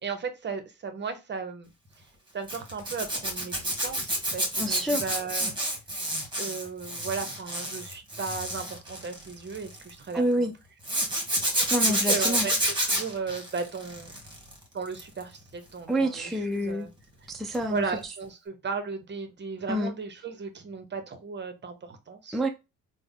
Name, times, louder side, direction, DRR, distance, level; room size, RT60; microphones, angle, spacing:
voice 1, 0.0-1.7 2.0-2.1 2.3-5.6 6.4-10.5 11.8-14.1 14.7-16.9 17.7-22.4, right 5 dB, 35° right, 0.7 m, -36 dB
Zipper (clothing), 2.5-9.9 10.8-14.5 14.9-15.2 17.5-17.7 18.0-18.1, right 1 dB, 15° right, 1.5 m, -29 dB
voice 2, 4.6-5.1 10.1-10.5 11.4-12.5 15.9-16.9 17.3-17.8 19.7-19.9 22.3-22.5, right 1 dB, ahead, 0.4 m, -28 dB
3.4 x 2.1 x 3.6 m
cardioid pair, 90°, 30 cm